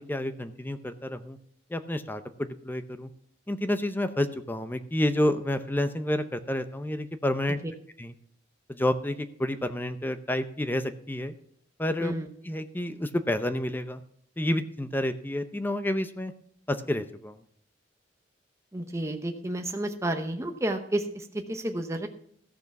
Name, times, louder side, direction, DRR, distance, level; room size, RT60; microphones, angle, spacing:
voice 1, 0.0-1.4 1.7-3.1 3.5-7.6 8.0-8.1 8.7-11.3 11.8-12.1 12.4-14.0 14.4-16.3 16.7-17.4, left 1 dB, 10° left, 10 dB, 0.6 m, -29 dB
voice 2, 18.7-22.1, right 1 dB, 15° right, 4 dB, 0.9 m, -31 dB
14.0 x 6.7 x 5.9 m, 0.65 s
head